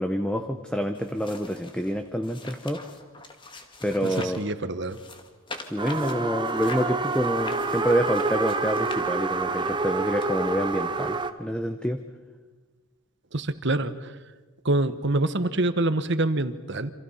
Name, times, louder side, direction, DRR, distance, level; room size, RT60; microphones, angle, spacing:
voice 1, 0.0-2.8 3.8-4.4 5.7-12.0, equal, 5° left, 6 dB, 1.1 m, -27 dB
sound 1, 0.9-4.5 4.9-9.5 10.2-10.3, left 2 dB, 20° left, 2.0 m, -43 dB
voice 2, 4.4-5.0 13.3-14.1 14.6-16.9, right 2 dB, 55° right, 11 dB, 1.3 m, -25 dB
sound 2, 5.8-11.3, right 3 dB, 20° right, 1.0 m, -28 dB
28.5 x 27.0 x 5.7 m, 1.3 s
head